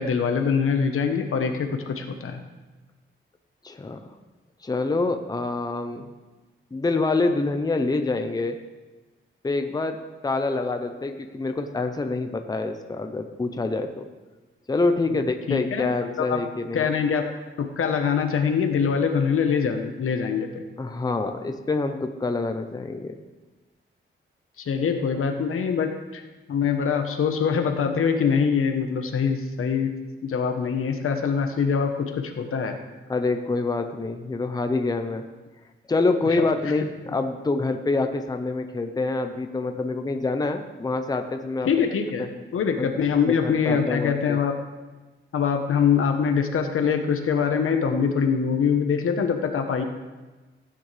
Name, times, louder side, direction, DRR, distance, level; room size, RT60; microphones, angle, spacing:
voice 1, 0.0-2.4 15.1-15.9 16.2-16.4 16.7-17.3 17.6-20.6 24.6-26.2 26.5-32.8 36.3-36.7 41.6-42.2 42.5-44.6 45.3-49.8, left 6 dB, 90° left, 5 dB, 1.1 m, -24 dB
voice 2, 3.6-4.0 4.6-6.1 6.7-8.6 9.4-14.1 14.7-16.9 20.8-23.2 33.1-35.2 35.9-41.7 42.2-42.3 42.8-42.9 43.3-44.4, left 3 dB, 20° left, 6 dB, 0.6 m, -26 dB
15.5 x 9.1 x 3.4 m, 1.2 s
wide cardioid pair, 155°, 21 cm